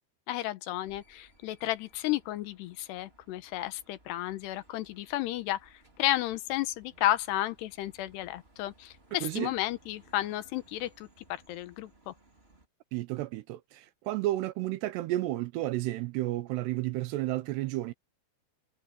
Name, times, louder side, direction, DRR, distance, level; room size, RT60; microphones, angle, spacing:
voice 1, 0.3-12.1, left 15 dB, 80° left, 3.1 m, -33 dB
sound 1, 0.8-12.7, right 1 dB, 15° right, 3.3 m, -62 dB
voice 2, 9.2-9.5 12.9-17.9, right 16 dB, 80° right, 2.8 m, -32 dB
omnidirectional pair, 4.9 m